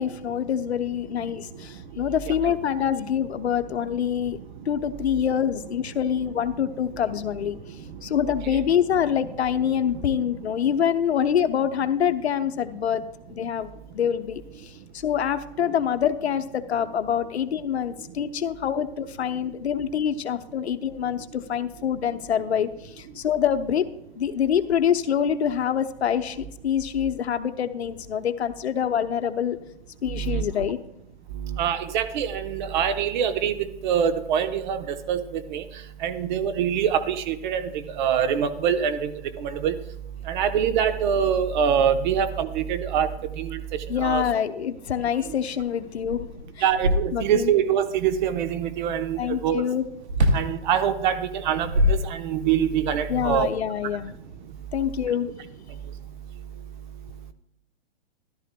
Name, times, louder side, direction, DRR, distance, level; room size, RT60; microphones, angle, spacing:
voice 1, 0.0-4.4 4.7-13.0 13.3-23.9 24.2-29.6 30.0-30.8 43.9-46.3 46.6-46.7 47.1-47.5 49.2-49.8 53.1-54.1 54.7-55.3, left 8 dB, 75° left, 11 dB, 0.8 m, -25 dB
voice 2, 30.1-30.4 31.4-35.2 35.5-35.6 36.0-39.1 39.4-39.7 40.3-43.1 43.4-43.6 44.0-44.2 46.6-49.6 50.3-53.5, right 8 dB, 45° right, 9 dB, 0.9 m, -24 dB
sound 1, 45.6-45.7 46.0-47.5 50.1-50.5 51.4-52.6, left 1 dB, 85° right, 1.4 m, -24 dB
14.0 x 12.0 x 2.2 m, 0.81 s
hypercardioid pair, 130°, 33 cm